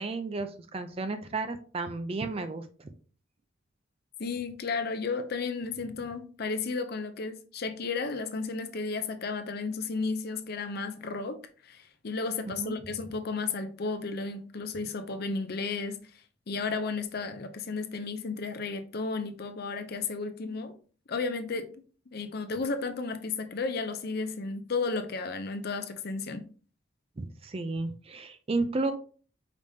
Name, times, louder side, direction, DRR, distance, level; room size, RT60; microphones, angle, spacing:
voice 1, 0.0-2.9 12.4-12.7 27.2-28.9, right 3 dB, 30° right, 0.4 m, -33 dB
voice 2, 4.2-16.0 16.5-20.7 21.1-21.7 22.1-26.5, left 4 dB, 50° left, 0.5 m, -33 dB
5.0 x 3.4 x 2.7 m
head